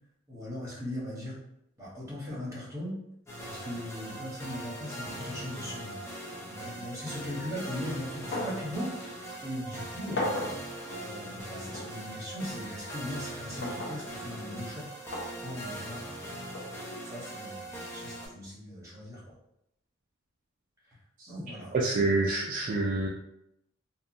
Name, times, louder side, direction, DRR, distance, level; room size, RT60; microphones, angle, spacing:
voice 1, 0.3-1.4 1.8-3.0 3.5-6.0 6.5-14.9 15.4-16.0 17.0-19.3 20.9-21.0 21.3-21.7, left 1 dB, 15° right, -7 dB, 1.0 m, -39 dB
sound 1, 3.3-18.3, right 1 dB, 15° left, 0.5 m, -41 dB
sound 2, 8.3-8.7 9.0-9.1 10.2-10.6 11.7-11.9 13.6-14.0 15.1-15.3 16.5-16.7, left 1 dB, 60° left, 0.6 m, -34 dB
voice 2, 21.7-23.1, right 3 dB, 45° right, -2 dB, 0.3 m, -27 dB
2.7 x 2.3 x 2.6 m, 0.81 s
head